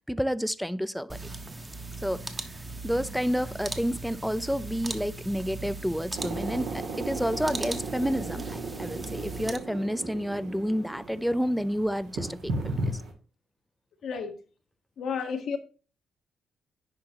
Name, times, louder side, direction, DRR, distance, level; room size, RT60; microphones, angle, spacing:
voice 1, 0.1-1.2 2.0-2.3 2.8-13.0, equal, ahead, 0.4 m, -30 dB
sound 1, 1.1-9.6, right 2 dB, 25° right, 1.1 m, -38 dB
sound 2, 6.1-13.1, right 2 dB, 80° right, 1.5 m, -36 dB
voice 2, 14.0-14.3 15.0-15.6, left 6 dB, 70° left, 0.9 m, -31 dB
10.5 x 3.8 x 2.9 m
supercardioid pair, 60°, 0 cm